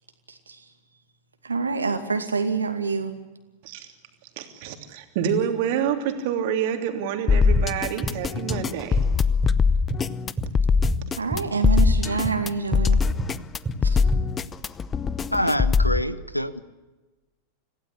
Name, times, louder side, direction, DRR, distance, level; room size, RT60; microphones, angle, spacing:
voice 1, 0.3-1.0 1.4-3.1 11.1-13.1 13.8-14.0, right 4 dB, 75° right, 7 dB, 2.4 m, -27 dB
voice 2, 4.4-9.0, right 8 dB, 50° right, 5 dB, 3.1 m, -27 dB
sound 1, 7.3-16.0, left 5 dB, 20° left, 0.8 m, -21 dB
sound 2, 7.6-10.5 10.8-11.1 11.3-14.3, right 2 dB, 15° right, 4.5 m, -31 dB
voice 3, 15.3-16.6, equal, 90° left, 17 dB, 1.0 m, -25 dB
26.5 x 16.5 x 8.6 m, 1.2 s
figure-of-eight pair, 90°, 0 cm